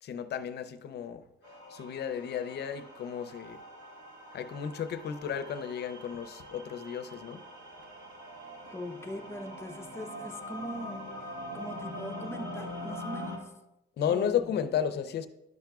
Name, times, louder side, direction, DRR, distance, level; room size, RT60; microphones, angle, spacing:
voice 1, 0.0-1.2 1.7-3.6 4.3-7.4 14.0-15.3, left 8 dB, 55° left, 0.5 m, -33 dB
sound 1, 1.4-13.4, left 1 dB, 80° right, 2.1 m, -43 dB
voice 2, 8.7-13.5 14.1-14.5, equal, 10° left, 0.6 m, -41 dB
10.5 x 5.8 x 2.3 m
cardioid pair, 105°, 20 cm